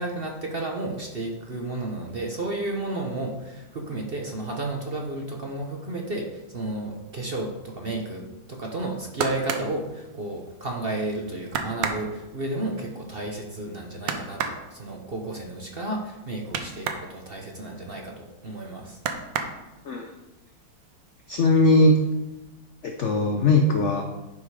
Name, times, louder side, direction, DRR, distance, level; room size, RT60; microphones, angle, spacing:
voice 1, 0.0-19.0, right 2 dB, 40° right, 1 dB, 0.9 m, -32 dB
sound 1, 8.8-10.7 11.1-11.2 11.5-17.1 17.4-18.6 18.9-20.0 20.5-21.1 21.4-22.1 22.4-22.5, right 6 dB, 80° right, 1.5 m, -32 dB
voice 2, 21.3-22.0 22.8-24.0, left 2 dB, 65° left, 4 dB, 0.7 m, -20 dB
11.0 x 5.3 x 4.9 m, 1.0 s
omnidirectional pair, 2.0 m